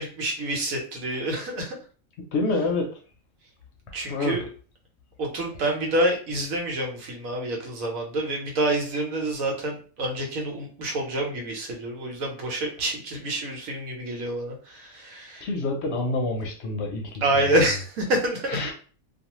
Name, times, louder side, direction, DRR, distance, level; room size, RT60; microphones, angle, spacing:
voice 1, 0.0-1.8 3.9-4.4 5.2-15.5 17.2-18.7, right 1 dB, 85° right, 1 dB, 1.2 m, -27 dB
voice 2, 2.3-2.9 4.1-4.4 15.4-17.5 18.5-18.7, left 2 dB, 65° left, 1 dB, 0.8 m, -27 dB
2.4 x 2.3 x 2.9 m, 0.40 s
omnidirectional pair, 1.4 m